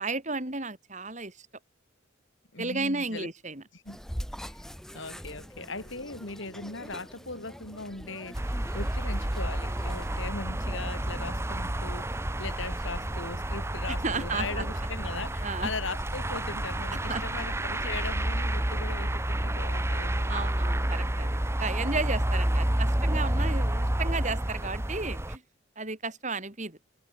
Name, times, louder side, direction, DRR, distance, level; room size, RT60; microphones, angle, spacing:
voice 1, 0.0-1.5 2.6-3.6 13.9-14.6 15.4-15.7 16.9-17.2 20.3-25.4 25.8-26.8, right 3 dB, 35° right, 3.8 m, -33 dB
voice 2, 2.5-3.3 3.7-4.0 4.4-4.6 4.9-20.3 23.4-23.6, left 3 dB, 75° left, 5.8 m, -39 dB
sound 1, 3.9-10.3, equal, ahead, 1.3 m, -43 dB
sound 2, 8.3-25.4, right 1 dB, 15° right, 1.1 m, -29 dB
head